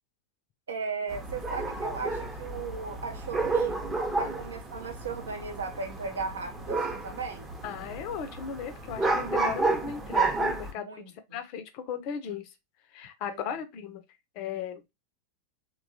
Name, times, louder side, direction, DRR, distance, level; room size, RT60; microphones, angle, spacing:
voice 1, 0.7-3.8 4.2-7.5 10.7-11.1 13.2-13.6, right 5 dB, 65° right, 0.6 m, -37 dB
sound 1, 1.1-10.7, right 3 dB, 15° right, 0.6 m, -31 dB
voice 2, 7.6-10.9 11.3-12.5 12.9-14.0 14.4-14.9, left 7 dB, 45° left, 0.5 m, -36 dB
2.9 x 2.2 x 2.6 m
figure-of-eight pair, 90°, 0 cm